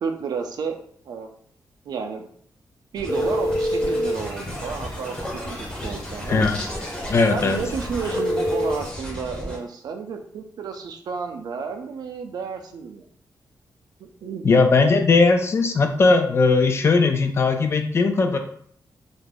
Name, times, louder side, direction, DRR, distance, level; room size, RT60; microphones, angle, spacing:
voice 1, 0.0-0.8 1.1-1.3 1.9-2.3 2.9-6.5 7.3-13.1 14.0-14.5, right 5 dB, 70° right, 4 dB, 0.4 m, -31 dB
sound 1, 2.9-9.6, equal, 15° left, 0.7 m, -34 dB
sound 2, 3.1-8.9, equal, 60° left, 1.0 m, -29 dB
voice 2, 7.1-7.6 14.4-18.4, left 4 dB, 40° left, 6 dB, 0.3 m, -18 dB
2.4 x 2.2 x 3.3 m, 0.62 s
wide cardioid pair, 140°, 7 cm